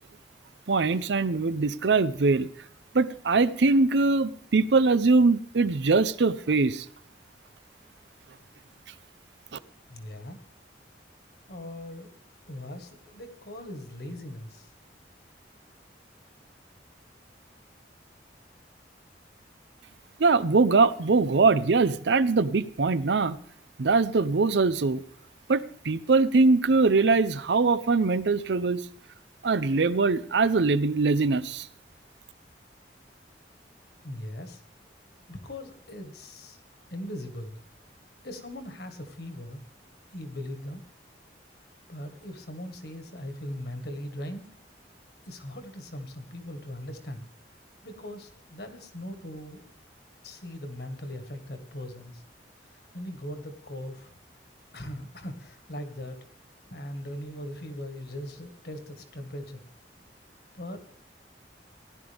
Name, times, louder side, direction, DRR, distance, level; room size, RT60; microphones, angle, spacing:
voice 1, 0.7-2.5 2.9-6.9 9.5-9.6 20.2-23.4 23.8-25.0 25.5-28.8 29.4-31.7, right 3 dB, 75° right, 15 dB, 0.6 m, -22 dB
voice 2, 9.9-10.4 11.5-12.1 12.5-14.7 34.0-34.6 35.3-36.6 36.9-37.6 38.2-39.6 40.1-40.8 41.9-44.5 45.3-47.2 47.8-49.7 50.2-52.2 52.6-54.1 54.7-56.2 56.7-59.6 60.5-60.8, left 1 dB, 60° left, 7 dB, 1.7 m, -39 dB
17.0 x 11.0 x 3.5 m, 0.64 s
head